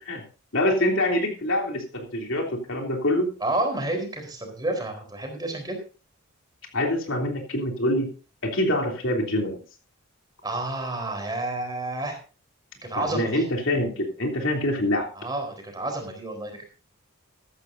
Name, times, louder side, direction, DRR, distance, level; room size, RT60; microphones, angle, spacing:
voice 1, 0.5-3.3 6.7-8.1 8.4-9.6 12.9-15.1, left 1 dB, 60° left, 2 dB, 3.2 m, -25 dB
voice 2, 3.4-5.8 10.4-12.2 12.8-13.4 15.1-16.7, right 2 dB, 20° right, 3 dB, 4.1 m, -30 dB
14.0 x 14.0 x 2.7 m, 0.35 s
head